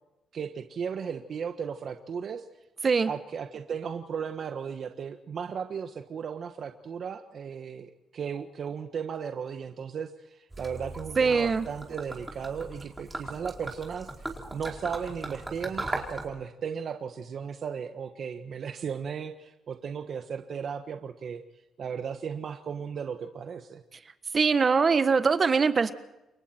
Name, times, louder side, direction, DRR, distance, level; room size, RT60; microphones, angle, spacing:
voice 1, 0.3-2.4 3.1-21.4 21.8-23.8, right 7 dB, 55° right, 6 dB, 1.4 m, -36 dB
Gurgling / Liquid, 10.5-16.3, right 2 dB, 15° right, 4.7 m, -38 dB
voice 2, 11.2-11.7 24.3-25.9, right 5 dB, 40° right, 11 dB, 1.4 m, -22 dB
29.0 x 23.0 x 4.5 m, 0.95 s
cardioid pair, 90°, 0 cm